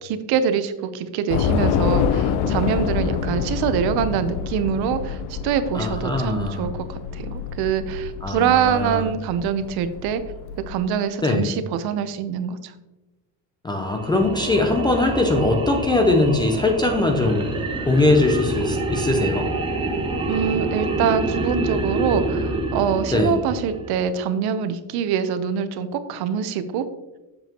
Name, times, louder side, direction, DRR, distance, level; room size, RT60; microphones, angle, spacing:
voice 1, 0.0-10.2 10.7-12.7 20.3-26.9, right 8 dB, 60° right, 11 dB, 0.8 m, -24 dB
Train / Subway metro underground, 1.3-10.7, left 7 dB, 80° left, 0.7 m, -26 dB
voice 2, 5.7-6.7 8.2-9.0 11.2-11.5 13.6-17.5 17.9-19.5 23.1-23.4, left 2 dB, 10° left, 3 dB, 0.4 m, -21 dB
sound 1, 13.8-24.2, right 2 dB, 10° right, 0.8 m, -27 dB
7.8 x 7.1 x 2.9 m, 1.1 s
cardioid pair, 160°, 42 cm